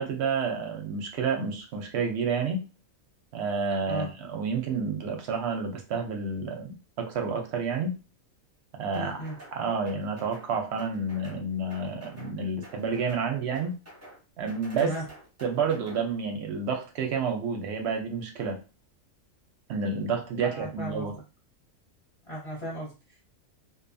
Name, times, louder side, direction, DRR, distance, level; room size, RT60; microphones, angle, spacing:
voice 1, 0.0-2.7 3.3-8.0 8.8-9.2 9.5-13.7 14.4-15.0 15.4-18.6 19.7-21.1, right 5 dB, 65° right, 3 dB, 0.7 m, -30 dB
voice 2, 8.9-9.4 14.8-15.0 20.4-21.1 22.3-23.2, right 1 dB, 30° left, -5 dB, 0.6 m, -36 dB
sound 1, 8.9-9.6 9.9-10.5 10.8-11.4 11.7-12.3 12.6-13.3 13.5-14.2 14.5-16.0, equal, 15° right, 0.5 m, -49 dB
2.6 x 2.3 x 2.5 m, 0.32 s
omnidirectional pair, 1.4 m